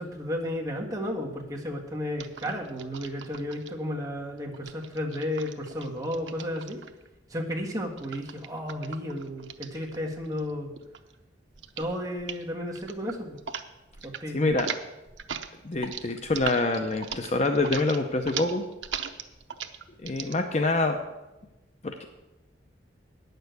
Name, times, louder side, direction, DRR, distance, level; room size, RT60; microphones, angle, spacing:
voice 1, 0.0-6.8 7.3-10.7 11.8-13.4 14.0-14.5, left 1 dB, 20° right, -2 dB, 1.7 m, -33 dB
sound 1, 2.2-3.7 4.5-7.1 8.0-10.5 10.8-11.2 11.6-11.9 12.2-12.4 12.8-13.7 13.9-14.2 14.5-20.4, right 7 dB, 85° right, 0.7 m, -38 dB
voice 2, 14.3-14.7 15.6-18.6 20.0-21.0 21.8-22.0, left 2 dB, 40° left, 6 dB, 0.7 m, -26 dB
9.6 x 6.7 x 8.1 m, 1.0 s
head